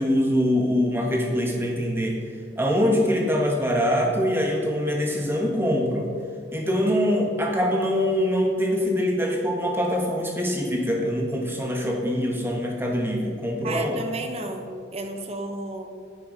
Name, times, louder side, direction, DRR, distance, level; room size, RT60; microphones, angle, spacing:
voice 1, 0.0-2.2 2.6-6.1 6.5-14.0, equal, 10° right, 0 dB, 1.0 m, -24 dB
voice 2, 13.6-16.0, right 2 dB, 30° right, 5 dB, 0.7 m, -32 dB
9.0 x 4.8 x 4.8 m, 2.1 s
head